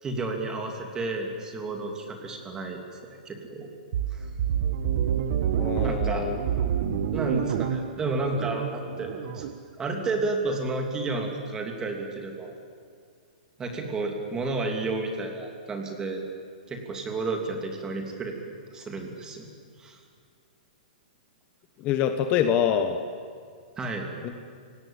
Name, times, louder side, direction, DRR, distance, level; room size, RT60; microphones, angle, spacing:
voice 1, 0.0-2.8 3.2-3.7 4.1-4.3 5.8-6.3 7.1-9.5 9.8-12.5 13.6-16.2 16.7-18.4 18.7-19.5 19.8-20.0 23.8-24.1, right 3 dB, 15° right, 3 dB, 3.0 m, -31 dB
sound 1, 3.9-9.6, right 9 dB, 55° right, 1.4 m, -28 dB
voice 2, 5.6-6.4 21.8-23.0 24.2-24.3, left 9 dB, 30° left, 7 dB, 1.2 m, -25 dB
29.5 x 17.5 x 9.0 m, 2.1 s
hypercardioid pair, 155°, 5 cm